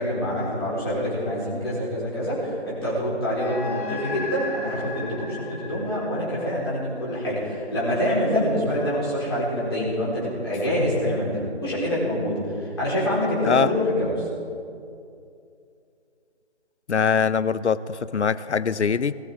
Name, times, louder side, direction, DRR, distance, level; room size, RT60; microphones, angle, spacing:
voice 1, 0.0-14.3, equal, 20° left, -8 dB, 4.2 m, -26 dB
sound 1, 3.3-8.0, left 3 dB, 55° left, 3.4 m, -37 dB
voice 2, 16.9-19.1, left 6 dB, 90° left, 16 dB, 0.7 m, -22 dB
21.0 x 14.0 x 3.7 m, 2.5 s
figure-of-eight pair, 175°, 33 cm